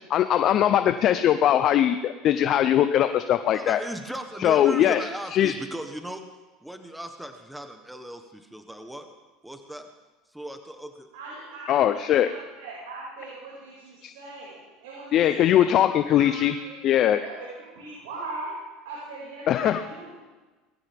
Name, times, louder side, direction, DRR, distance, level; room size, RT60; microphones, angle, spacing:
voice 1, 0.1-3.8 4.4-5.1 5.3-5.5 11.7-12.3 14.0-14.1 15.1-16.6 16.8-17.2 19.5-19.8, left 11 dB, 45° left, 10 dB, 0.7 m, -21 dB
voice 2, 3.5-6.2 6.6-9.1 9.4-9.9 10.3-11.1, right 1 dB, 5° right, 6 dB, 1.2 m, -37 dB
voice 3, 11.1-18.6 18.8-20.1, right 2 dB, 85° right, -6 dB, 5.7 m, -40 dB
20.0 x 15.5 x 3.6 m, 1.2 s
supercardioid pair, 115°, 0 cm